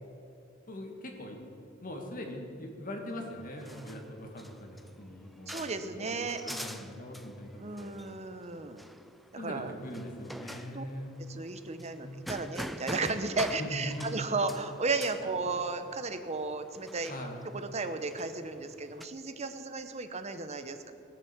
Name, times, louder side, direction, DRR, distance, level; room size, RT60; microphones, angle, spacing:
voice 1, 0.7-1.4 1.8-5.6 6.0-7.9 9.4-11.2 12.0-12.2 13.6-14.2 17.1-17.4, left 1 dB, 45° left, 2 dB, 2.0 m, -41 dB
sound 1, 3.1-19.1, equal, ahead, 0.4 m, -46 dB
voice 2, 5.5-6.4 7.6-8.8 9.3-9.7 10.7-10.8 11.3-17.1 17.5-20.9, right 3 dB, 35° right, 9 dB, 0.9 m, -34 dB
19.5 x 7.1 x 7.3 m, 2.6 s
head